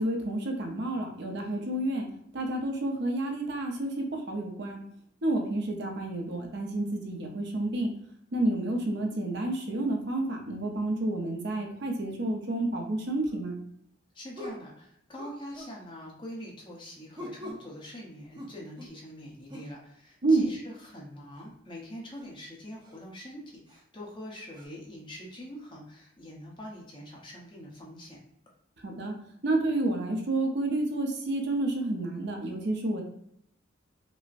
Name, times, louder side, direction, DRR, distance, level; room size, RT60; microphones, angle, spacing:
voice 1, 0.0-2.1 2.3-4.8 5.2-7.9 8.3-13.6 20.2-20.5 28.8-29.1 29.4-33.0, right 2 dB, 55° right, 2 dB, 0.6 m, -29 dB
sound 1, 13.3-13.4 14.3-14.7 15.2-15.8 17.1-17.7 18.3-19.0 19.5-19.7 21.3-21.5 22.1-22.3 22.8-23.0 23.7-23.8 24.5-24.6, left 1 dB, 25° right, 0.7 m, -43 dB
voice 2, 14.1-28.2, equal, 25° left, -3 dB, 0.9 m, -44 dB
5.2 x 2.1 x 2.5 m, 0.72 s
head